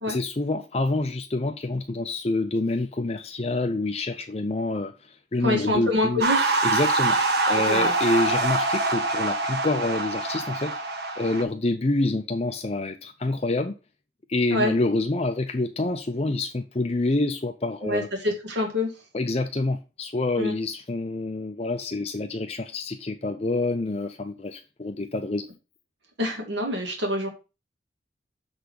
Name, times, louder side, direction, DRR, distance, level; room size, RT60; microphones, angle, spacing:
voice 1, 0.1-6.2 6.6-7.2 7.5-10.7 11.2-13.7 14.3-18.1 19.1-25.5, left 2 dB, 35° left, 0.6 m, -27 dB
voice 2, 5.4-6.4 7.7-7.9 14.5-14.7 17.8-18.9 20.4-20.5 26.2-27.3, left 1 dB, 80° right, 2.5 m, -26 dB
sound 1, 6.2-11.4, right 2 dB, 60° right, 1.4 m, -24 dB
6.8 x 4.1 x 6.4 m
head